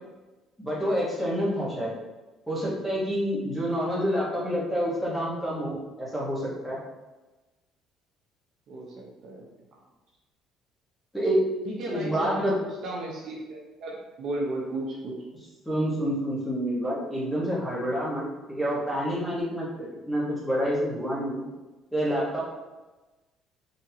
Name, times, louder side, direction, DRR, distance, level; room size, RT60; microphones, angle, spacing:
voice 1, 0.6-1.9 2.5-6.8 11.1-11.4 11.9-12.5 15.6-21.5 21.9-22.4, equal, 5° left, -7 dB, 1.2 m, -28 dB
voice 2, 11.6-15.1 19.9-20.0, right 2 dB, 50° right, -3 dB, 0.8 m, -34 dB
4.2 x 3.0 x 2.8 m, 1.1 s
cardioid pair, 150°, 0 cm